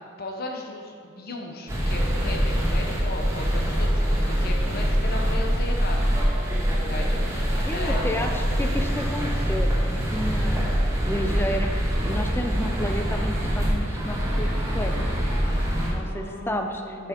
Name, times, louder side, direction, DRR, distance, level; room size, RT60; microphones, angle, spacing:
voice 1, 0.2-6.0 6.9-7.1 7.7-8.0 15.4-17.1, left 2 dB, 45° left, 1 dB, 0.9 m, -36 dB
sound 1, 1.7-15.9, equal, 15° right, 1.5 m, -24 dB
voice 2, 7.6-14.5 14.7-15.1 15.9-17.1, left 1 dB, 10° left, 4 dB, 0.5 m, -31 dB
7.8 x 6.1 x 4.4 m, 2.7 s
head